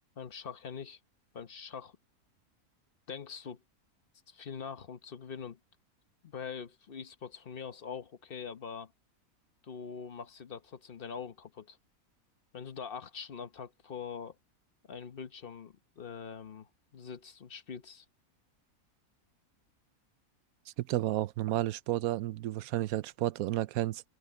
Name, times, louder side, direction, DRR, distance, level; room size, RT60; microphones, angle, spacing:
voice 1, 0.2-1.0 1.3-2.0 3.1-3.6 4.3-5.6 6.2-8.9 9.6-11.8 12.5-14.3 14.9-18.1, left 6 dB, 45° left, 1.1 m, -43 dB
voice 2, 20.8-24.0, right 14 dB, 75° right, 1.0 m, -31 dB
open air
omnidirectional pair, 1.5 m